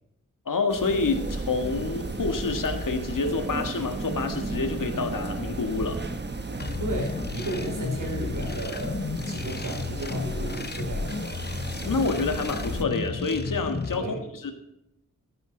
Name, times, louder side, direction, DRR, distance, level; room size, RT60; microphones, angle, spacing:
voice 1, 0.4-6.0 11.9-14.0 14.4-14.5, left 4 dB, 85° left, 5 dB, 1.7 m, -28 dB
sound 1, 0.7-12.8, right 3 dB, 35° right, 1.0 m, -34 dB
sound 2, 6.6-14.0, left 4 dB, 30° left, 0.7 m, -33 dB
voice 2, 6.8-11.2 13.9-14.2, right 1 dB, 80° right, 1 dB, 4.4 m, -34 dB
13.5 x 9.8 x 4.0 m, 0.82 s
wide cardioid pair, 115°, 32 cm